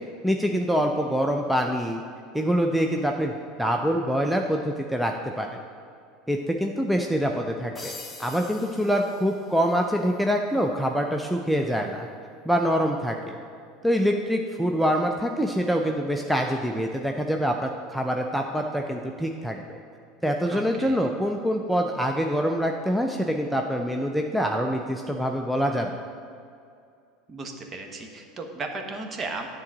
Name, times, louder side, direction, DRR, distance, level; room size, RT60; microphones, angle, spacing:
voice 1, 0.2-2.0 2.3-3.3 3.6-5.5 6.3-7.9 8.2-12.1 12.5-13.4 13.8-19.8 20.2-26.0, equal, ahead, 2 dB, 0.6 m, -25 dB
sound 1, 7.7-9.8, left 3 dB, 15° left, 1.1 m, -43 dB
voice 2, 20.5-21.1 27.3-29.5, right 3 dB, 30° right, 3 dB, 1.2 m, -35 dB
9.6 x 3.9 x 7.3 m, 2.4 s
hypercardioid pair, 80°, 0 cm